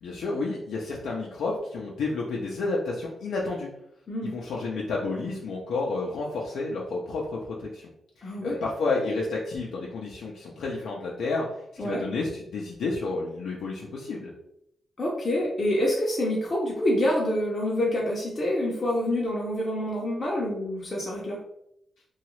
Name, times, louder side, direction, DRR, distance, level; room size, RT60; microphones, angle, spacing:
voice 1, 0.0-3.7 4.2-7.9 8.2-11.5 11.7-14.3, left 3 dB, 85° left, -3 dB, 0.5 m, -30 dB
voice 2, 8.2-8.6 11.8-12.0 15.0-21.4, left 1 dB, 30° left, -4 dB, 0.6 m, -27 dB
2.8 x 2.3 x 3.0 m, 0.77 s
wide cardioid pair, 135°, 0 cm